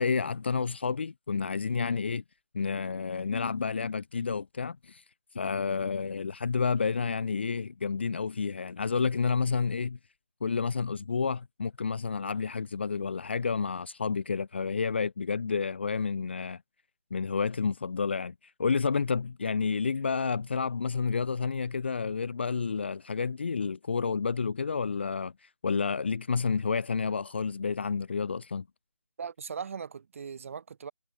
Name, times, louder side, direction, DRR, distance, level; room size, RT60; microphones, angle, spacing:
voice 1, 0.0-2.2 2.5-5.0 5.3-10.0 10.4-16.6 17.1-28.6, left 5 dB, 20° left, 1.4 m, -30 dB
voice 2, 29.2-30.9, right 6 dB, 20° right, 6.2 m, -39 dB
figure-of-eight pair, 170°, 19 cm